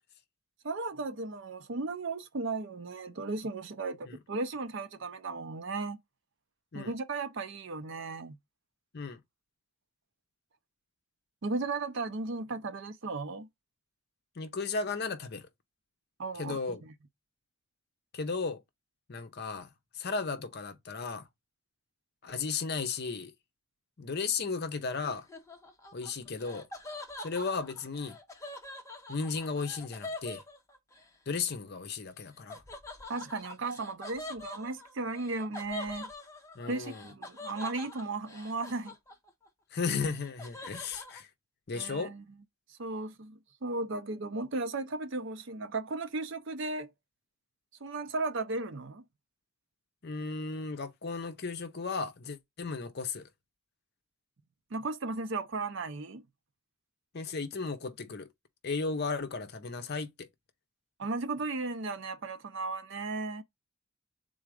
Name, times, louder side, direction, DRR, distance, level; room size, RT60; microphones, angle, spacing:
voice 1, 0.6-6.0 6.7-8.4 11.4-13.5 16.2-16.8 33.1-36.1 36.7-39.0 41.7-42.2 42.7-46.9 47.8-49.0 54.7-56.2 61.0-63.4, right 3 dB, 55° right, 0.6 m, -35 dB
voice 2, 14.4-15.5 16.3-16.8 18.1-18.6 19.1-19.7 19.9-21.2 22.2-23.3 24.0-25.3 25.9-26.7 27.2-28.2 29.1-30.4 31.3-32.6 36.5-37.1 39.7-41.3 41.7-42.1 50.0-53.3 57.1-58.3 58.6-60.3, left 4 dB, 45° left, 0.6 m, -35 dB
Laughter, 25.0-31.1 32.5-39.5 39.8-41.2, left 2 dB, 15° left, 0.8 m, -45 dB
3.8 x 2.4 x 4.6 m
head